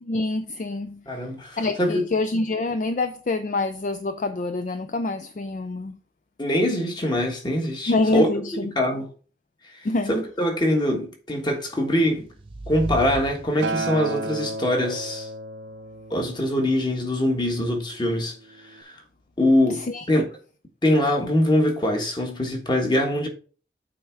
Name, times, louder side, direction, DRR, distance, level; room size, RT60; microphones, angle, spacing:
voice 1, 0.0-1.0 1.6-6.0 7.9-8.7 9.8-10.1 19.9-20.0, left 2 dB, 45° left, 0.4 m, -26 dB
voice 2, 1.1-2.1 6.4-8.3 8.6-9.1 10.1-12.3 12.7-15.3 16.1-18.3 18.8-18.9 19.4-20.2 20.8-23.3, left 1 dB, 25° left, 1.4 m, -23 dB
sound 1, 11.8-14.1, right 2 dB, 30° right, 0.6 m, -36 dB
Acoustic guitar, 13.6-17.9 18.8-18.9, right 2 dB, 90° right, 0.6 m, -33 dB
8.5 x 3.5 x 4.5 m
head